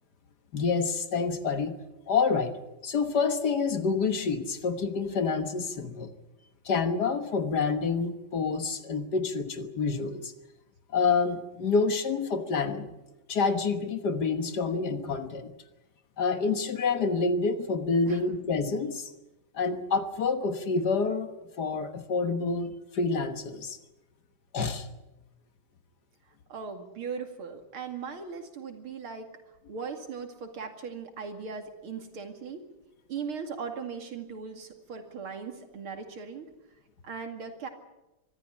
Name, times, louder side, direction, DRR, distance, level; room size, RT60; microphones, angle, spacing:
voice 1, 0.5-1.8 2.1-6.1 6.7-10.3 10.9-12.9 13.3-15.5 16.2-19.1 19.5-23.8 24.5-24.9, left 4 dB, 55° left, 9 dB, 1.7 m, -28 dB
voice 2, 26.5-29.3 29.7-32.6 33.1-36.5 37.0-37.7, right 5 dB, 80° right, 5 dB, 3.2 m, -38 dB
24.0 x 14.0 x 9.8 m, 1.0 s
omnidirectional pair, 2.3 m